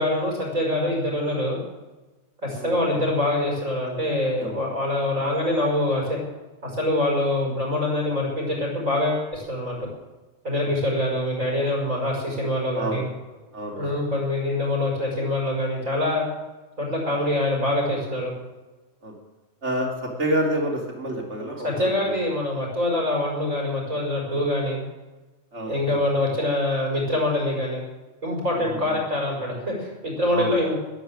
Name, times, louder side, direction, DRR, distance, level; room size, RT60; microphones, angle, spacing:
voice 1, 0.0-1.6 2.4-6.2 6.6-9.9 10.4-13.1 13.8-16.2 16.8-18.3 21.6-24.8 25.7-27.8 28.2-30.8, left 1 dB, 80° right, -1 dB, 6.0 m, -24 dB
voice 2, 2.5-3.0 4.4-4.6 10.6-10.7 12.7-13.0 13.5-13.9 19.0-19.1 19.6-22.2 25.5-26.0 28.6-29.0 30.3-30.6, right 1 dB, 60° right, 0 dB, 3.5 m, -29 dB
20.5 x 8.7 x 7.8 m, 1.2 s
omnidirectional pair, 1.4 m